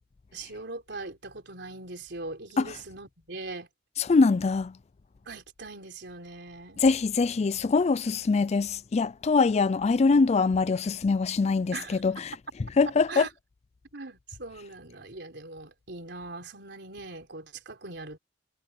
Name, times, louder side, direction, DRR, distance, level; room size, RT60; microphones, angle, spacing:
voice 1, 0.3-3.7 5.3-6.8 11.7-12.0 13.1-13.3 13.9-18.2, right 3 dB, 65° right, 4.0 m, -41 dB
voice 2, 4.0-4.7 6.8-12.3 12.8-13.3, left 4 dB, 35° left, 0.4 m, -23 dB
head